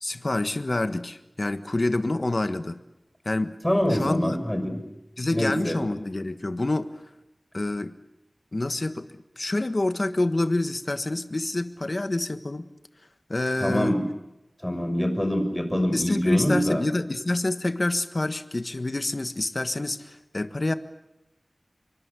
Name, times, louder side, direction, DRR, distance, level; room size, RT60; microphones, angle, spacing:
voice 1, 0.0-2.8 3.2-3.5 3.9-4.4 5.2-6.9 7.5-7.9 8.5-9.1 9.4-12.7 13.3-14.0 15.9-20.7, left 2 dB, 50° left, 10 dB, 1.4 m, -27 dB
voice 2, 3.6-4.8 5.3-5.8 13.6-14.0 14.6-16.8, equal, 10° left, 6 dB, 6.2 m, -24 dB
26.5 x 23.5 x 8.3 m, 0.91 s
wide cardioid pair, 55°, 0 cm